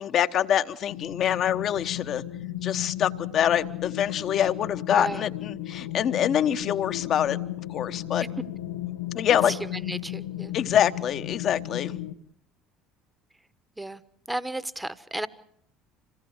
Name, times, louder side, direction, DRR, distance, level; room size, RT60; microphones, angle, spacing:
voice 1, 0.0-2.2 2.6-7.4 7.7-8.2 9.1-9.5 10.5-11.9, left 10 dB, 55° left, 10 dB, 1.2 m, -25 dB
sound 1, 0.9-12.1, left 14 dB, 90° left, 0.9 m, -35 dB
voice 2, 4.9-5.2 9.8-10.5 13.8-14.0 14.3-15.3, right 1 dB, 10° right, 15 dB, 1.2 m, -33 dB
26.0 x 18.0 x 8.1 m, 0.68 s
hypercardioid pair, 65°, 0 cm